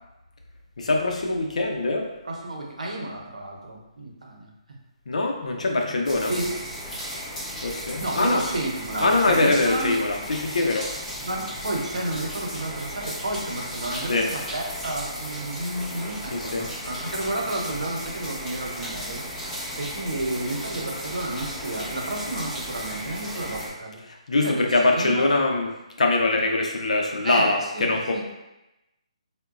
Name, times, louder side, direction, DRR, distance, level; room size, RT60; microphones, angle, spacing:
voice 1, 0.8-2.1 5.1-6.4 7.6-8.4 9.0-10.9 14.1-14.3 16.3-16.7 24.1-25.7 26.0-28.2, left 2 dB, 75° left, 2 dB, 0.6 m, -23 dB
voice 2, 2.2-4.5 5.5-5.6 6.3-6.6 8.0-10.0 11.2-19.2 19.8-24.0 24.4-25.3 27.2-28.2, right 2 dB, 90° right, 0 dB, 0.7 m, -31 dB
sound 1, 6.0-23.7, equal, 5° left, 0.6 m, -35 dB
3.7 x 2.1 x 2.4 m, 0.94 s
hypercardioid pair, 155°, 4 cm